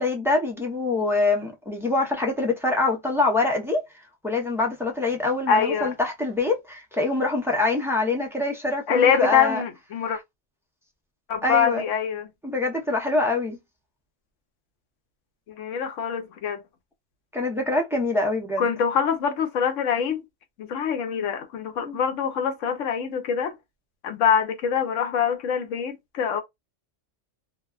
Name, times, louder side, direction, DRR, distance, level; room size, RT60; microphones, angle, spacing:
voice 1, 0.0-3.8 4.2-9.6 10.0-10.2 11.4-11.8 12.4-13.6 17.3-18.7 21.9-22.0, left 2 dB, 5° right, 0.4 m, -25 dB
voice 2, 5.5-5.9 8.9-10.2 11.3-12.3 15.5-16.6 18.6-20.2 20.6-23.5 24.0-26.4, left 7 dB, 80° left, 1.0 m, -24 dB
2.6 x 2.2 x 2.3 m
omnidirectional pair, 1.3 m